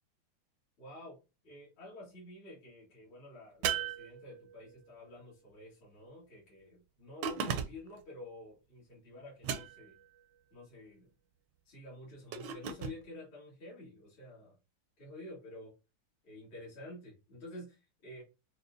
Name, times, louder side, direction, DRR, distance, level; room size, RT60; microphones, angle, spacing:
voice 1, 0.8-1.2 1.4-9.9 10.5-11.1 11.7-14.5 15.0-15.7 16.2-18.2, left 1 dB, 70° left, -7 dB, 2.6 m, -50 dB
sound 1, 3.6-4.7 7.2-8.0 9.4-10.0 12.3-13.0, right 8 dB, 75° right, 1.1 m, -36 dB
6.2 x 2.3 x 2.5 m, 0.28 s
omnidirectional pair, 2.3 m